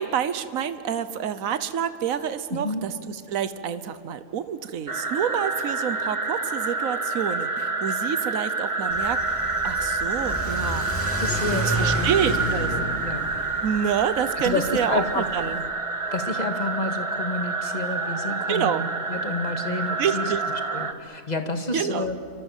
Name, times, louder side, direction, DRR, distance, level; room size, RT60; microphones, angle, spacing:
voice 1, 0.0-10.9 11.6-12.7 13.6-15.7 18.5-18.8 20.0-20.4 21.7-22.1, right 8 dB, 80° right, 12 dB, 1.4 m, -28 dB
voice 2, 2.5-2.9 11.2-13.3 14.4-15.2 16.1-20.3 20.7-22.2, left 3 dB, 30° left, 5 dB, 2.0 m, -30 dB
sound 1, 4.9-20.9, right 3 dB, 25° right, 1.2 m, -28 dB
Car / Accelerating revving vroom, 8.9-15.6, equal, 10° left, 2.9 m, -32 dB
29.0 x 25.0 x 7.4 m, 2.3 s
omnidirectional pair, 1.4 m